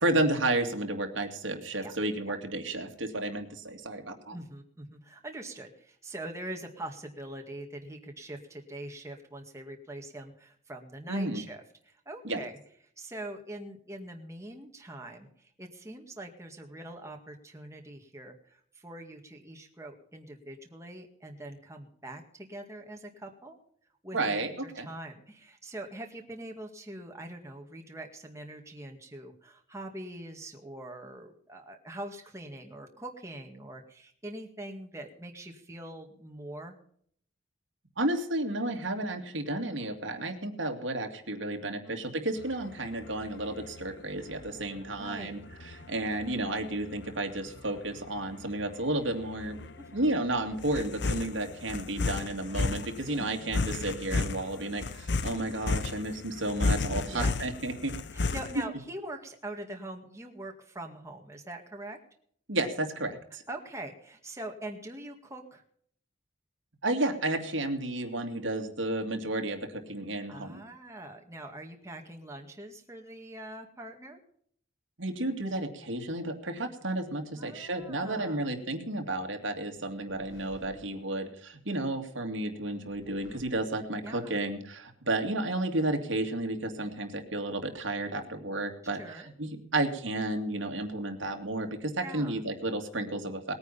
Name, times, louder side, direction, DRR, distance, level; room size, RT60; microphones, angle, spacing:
voice 1, 0.0-4.4 11.1-11.4 12.2-12.4 24.1-24.9 38.0-49.7 49.9-57.9 62.5-63.4 66.8-70.6 75.0-93.5, right 2 dB, 75° right, 5 dB, 2.4 m, -32 dB
voice 2, 4.3-12.6 13.0-23.6 24.0-36.8 41.6-42.0 45.0-45.3 49.8-50.0 53.2-53.6 57.1-57.4 58.1-62.0 63.5-65.6 70.3-74.2 77.3-78.5 84.0-84.4 88.9-89.3 92.0-92.4, right 1 dB, 15° right, 2 dB, 2.0 m, -43 dB
sound 1, 42.4-58.6, left 3 dB, 60° left, 0.9 m, -34 dB
sound 2, 79.7-81.6 82.6-84.1, left 1 dB, 85° left, 5.2 m, -55 dB
20.0 x 9.6 x 5.6 m, 0.63 s
head